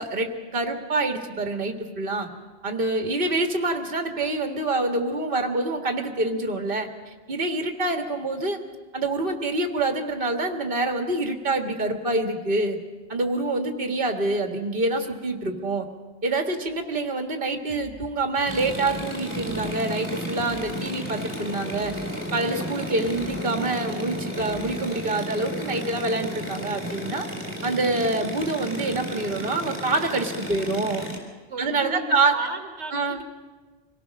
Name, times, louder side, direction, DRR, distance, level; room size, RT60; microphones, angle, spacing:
voice 1, 0.0-2.3 2.6-8.6 8.9-12.8 13.1-15.9 16.2-21.9 22.3-27.3 27.6-31.1 31.6-32.4 32.9-33.2, right 2 dB, 55° right, 4 dB, 1.9 m, -26 dB
sound 1, 16.6-16.7 17.0-17.1 17.7-18.0 18.3-19.1 19.3-19.8 20.3-20.7 21.0-21.1 21.7-22.1 22.4-22.5 23.0-23.4 23.7-23.8 24.4-24.7 25.0-25.1, equal, 30° left, 4.1 m, -47 dB
sound 2, 18.4-31.2, equal, 15° right, 4.1 m, -33 dB
voice 2, 31.5-33.3, right 3 dB, 80° right, 5 dB, 1.8 m, -35 dB
25.5 x 18.0 x 6.4 m, 1.4 s
omnidirectional pair, 1.1 m